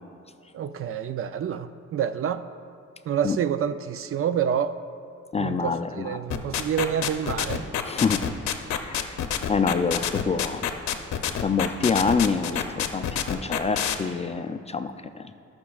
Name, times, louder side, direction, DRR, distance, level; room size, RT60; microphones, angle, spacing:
voice 1, 0.5-2.4 3.1-4.8 5.4-7.7, right 8 dB, 45° right, 12 dB, 0.4 m, -28 dB
voice 2, 5.3-6.1 7.9-8.2 8.8-9.2 9.5-10.6 11.4-15.2, left 5 dB, 20° left, 9 dB, 0.4 m, -26 dB
sound 1, 6.3-14.0, left 9 dB, 65° left, 0.7 m, -27 dB
18.0 x 6.1 x 2.4 m, 2.4 s
cardioid pair, 90°, 30 cm